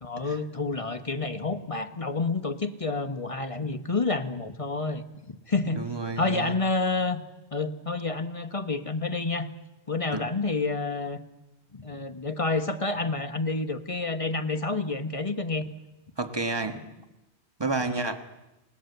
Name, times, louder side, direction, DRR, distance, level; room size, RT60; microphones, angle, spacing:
voice 1, 0.0-5.8 6.1-7.2 7.5-9.5 9.9-11.2 11.7-15.7 17.7-18.1, left 3 dB, 30° left, 1.3 m, -29 dB
voice 2, 5.7-6.5 10.1-10.3 16.2-16.8 17.6-18.2, right 3 dB, 20° right, 1.5 m, -30 dB
29.0 x 19.0 x 8.0 m
omnidirectional pair, 1.1 m